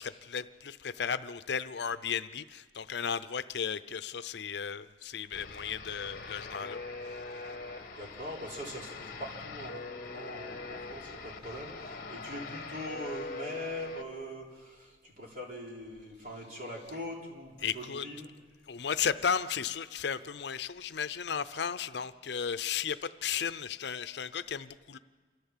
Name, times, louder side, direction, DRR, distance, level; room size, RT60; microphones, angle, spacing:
voice 1, 0.0-6.8 17.6-18.1 18.7-25.0, left 7 dB, 70° left, 13 dB, 0.6 m, -34 dB
sound 1, 5.3-14.0, left 3 dB, 50° left, 1.3 m, -42 dB
voice 2, 7.9-9.8 10.1-18.3, equal, 45° right, -2 dB, 3.8 m, -42 dB
27.5 x 14.0 x 7.3 m, 1.5 s
head